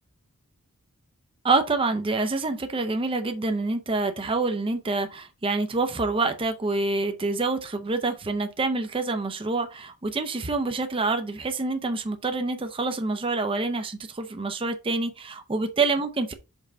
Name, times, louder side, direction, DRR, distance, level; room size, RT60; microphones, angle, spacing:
voice 1, 1.4-16.3, right 3 dB, 25° right, 0.6 m, -27 dB
5.4 x 3.8 x 4.9 m
head